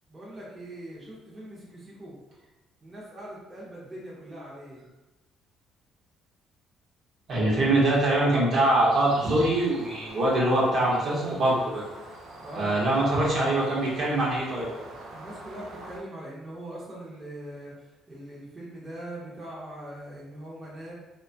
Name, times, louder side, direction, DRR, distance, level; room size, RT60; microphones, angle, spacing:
voice 1, 0.1-2.1 2.8-4.9 12.4-12.9 15.1-20.9, right 1 dB, 15° right, -7 dB, 0.7 m, -41 dB
voice 2, 7.3-11.8 12.5-14.7, right 1 dB, 45° right, -5 dB, 0.8 m, -23 dB
sound 1, 8.9-16.0, right 2 dB, 70° right, 0.5 m, -44 dB
2.8 x 2.2 x 2.7 m, 1.0 s
cardioid pair, 140°, 0 cm